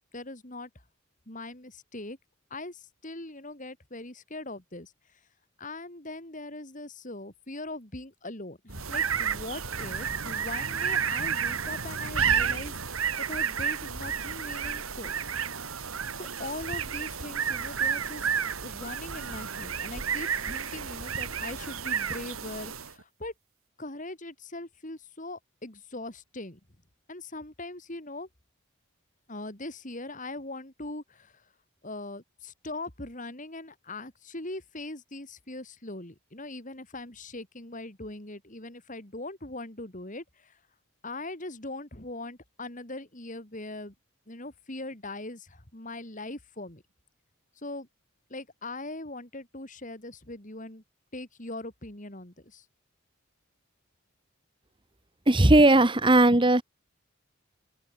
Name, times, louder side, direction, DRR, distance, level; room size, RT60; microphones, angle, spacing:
voice 1, 0.1-0.7 1.3-2.2 2.5-5.2 5.6-15.1 16.2-18.3 18.6-23.3 23.8-26.6 27.1-28.3 29.3-31.5 31.8-40.6 41.0-43.9 44.3-46.8 47.6-47.9 48.3-50.8 51.1-52.6, left 2 dB, 35° left, 3.2 m, -41 dB
sound 1, 8.7-23.0, right 7 dB, 75° right, 2.7 m, -31 dB
voice 2, 55.3-56.6, right 2 dB, 20° right, 1.2 m, -18 dB
head